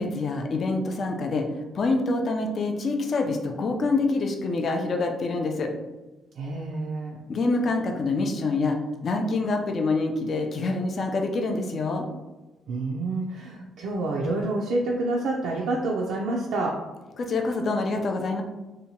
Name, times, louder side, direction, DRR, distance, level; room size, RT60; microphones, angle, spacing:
voice 1, 0.0-5.7 7.3-8.8 9.0-12.1 17.2-18.4, left 3 dB, 45° left, 3 dB, 0.4 m, -26 dB
voice 2, 6.4-7.2 12.7-16.8, right 2 dB, 80° right, -3 dB, 0.4 m, -28 dB
2.8 x 2.2 x 2.7 m, 1.1 s
cardioid pair, 105°, 0 cm